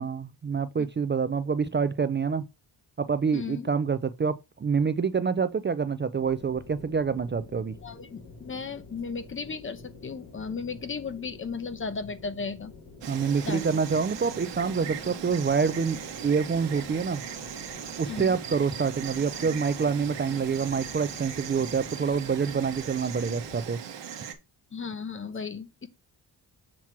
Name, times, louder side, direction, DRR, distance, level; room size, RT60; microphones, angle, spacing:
voice 1, 0.0-2.4 3.0-7.7 13.1-17.2 18.0-23.8, right 5 dB, 25° right, 0.4 m, -27 dB
voice 2, 3.3-3.7 7.8-12.7 13.4-13.8 18.1-18.4 24.7-25.9, left 5 dB, 30° left, 0.8 m, -35 dB
sound 1, 6.1-23.6, left 3 dB, 50° left, 3.0 m, -48 dB
Insect, 13.0-24.3, right 8 dB, 75° right, 1.2 m, -39 dB
7.4 x 3.0 x 5.9 m
cardioid pair, 95°, 43 cm